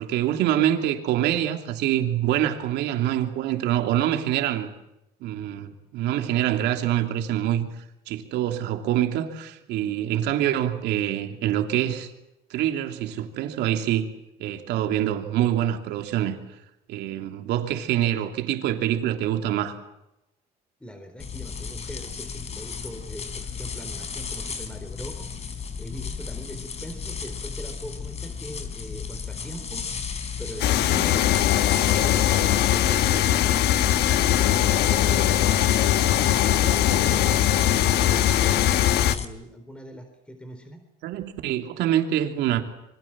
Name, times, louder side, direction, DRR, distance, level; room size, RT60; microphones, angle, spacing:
voice 1, 0.0-4.7 5.2-7.7 8.1-12.1 12.5-14.1 14.4-16.4 16.9-19.8 41.0-42.6, right 12 dB, 85° right, 5 dB, 3.0 m, -25 dB
voice 2, 20.8-25.3 25.5-30.1 30.4-34.5 34.9-35.6 36.3-38.8 39.0-40.8, equal, 5° left, 6 dB, 4.0 m, -41 dB
sound 1, 21.2-39.2, left 6 dB, 40° left, 4.0 m, -34 dB
sound 2, 30.6-39.1, left 11 dB, 80° left, 1.4 m, -21 dB
26.5 x 24.5 x 7.5 m, 0.90 s
cardioid pair, 110°, 17 cm